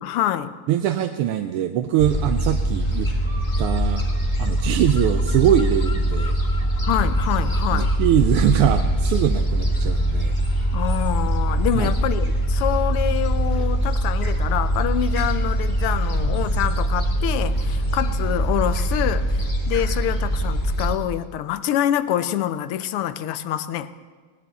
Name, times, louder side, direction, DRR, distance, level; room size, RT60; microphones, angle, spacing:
voice 1, 0.0-0.5 6.8-7.9 10.7-23.9, left 11 dB, 90° left, 13 dB, 1.6 m, -26 dB
voice 2, 0.7-3.1 3.6-4.0 4.4-6.4 7.7-10.3 11.7-12.0, right 11 dB, 90° right, 7 dB, 1.6 m, -22 dB
Gull seagull, 2.0-20.9, right 1 dB, 25° left, 1.9 m, -22 dB
19.0 x 18.0 x 4.1 m, 1.5 s
omnidirectional pair, 2.4 m